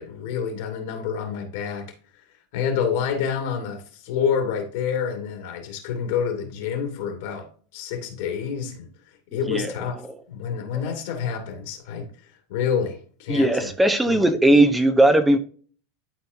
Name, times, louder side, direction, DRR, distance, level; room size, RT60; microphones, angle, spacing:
voice 1, 0.0-1.9 2.5-7.5 7.7-8.9 9.3-10.0 10.3-12.1 12.5-13.7 14.1-14.3, left 7 dB, 65° left, 2.4 m, -28 dB
voice 2, 13.3-15.4, right 1 dB, 10° right, 0.9 m, -18 dB
12.0 x 4.2 x 2.7 m
hypercardioid pair, 85°, 0 cm